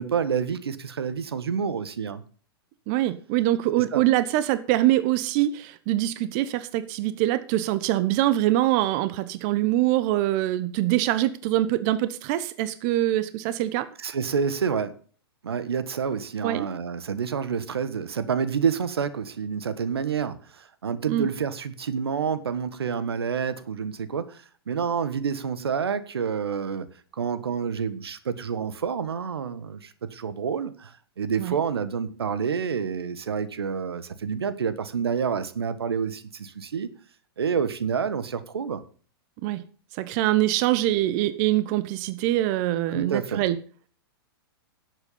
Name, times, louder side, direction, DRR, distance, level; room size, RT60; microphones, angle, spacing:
voice 1, 0.0-2.2 3.9-4.0 14.0-14.9 15.4-26.9 27.1-36.9 37.4-38.8 42.9-43.4, right 6 dB, 85° right, 13 dB, 1.3 m, -28 dB
voice 2, 2.9-13.9 16.4-16.7 21.1-21.3 31.4-31.6 39.4-39.6 40.0-43.6, right 14 dB, 45° right, 14 dB, 1.0 m, -24 dB
11.5 x 8.2 x 5.5 m, 0.42 s
hypercardioid pair, 115°, 13 cm